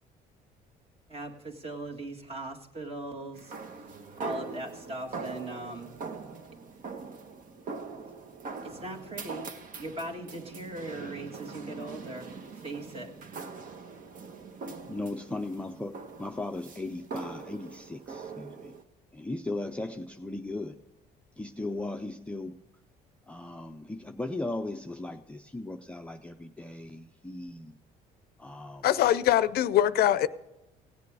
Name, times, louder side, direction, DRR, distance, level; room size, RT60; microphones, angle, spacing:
voice 1, 1.1-3.5 3.8-3.9 4.2-6.0 8.6-9.5 9.8-12.3 12.6-13.1, right 1 dB, 35° right, 2 dB, 1.9 m, -39 dB
sound 1, 3.3-18.8, right 4 dB, 55° right, 1.1 m, -42 dB
voice 2, 14.9-18.7 19.1-20.8 21.4-22.6 23.3-27.8 28.4-28.9, left 2 dB, 5° left, 4 dB, 0.5 m, -37 dB
voice 3, 28.8-30.3, left 12 dB, 65° left, 15 dB, 0.5 m, -23 dB
17.0 x 8.3 x 4.8 m, 0.95 s
cardioid pair, 110°, 17 cm